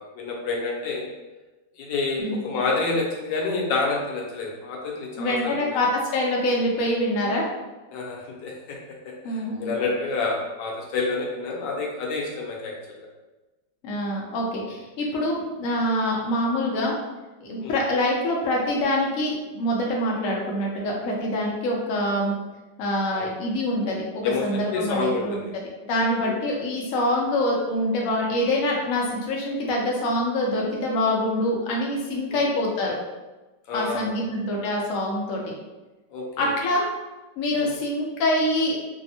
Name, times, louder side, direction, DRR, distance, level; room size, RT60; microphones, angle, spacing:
voice 1, 0.1-1.0 1.8-5.8 7.9-8.8 9.3-13.0 17.6-17.7 23.1-23.4 24.2-25.4 26.3-26.4 32.3-32.4 33.7-34.1 36.1-36.5 37.5-37.7, left 3 dB, 80° left, -2 dB, 1.3 m, -28 dB
voice 2, 5.2-7.4 9.2-9.8 13.8-16.9 17.4-22.3 22.8-25.6 25.9-32.9 33.7-35.4 36.4-36.8 37.4-38.7, left 1 dB, 65° left, -2 dB, 0.9 m, -25 dB
3.4 x 2.0 x 2.6 m, 1.1 s
omnidirectional pair, 1.9 m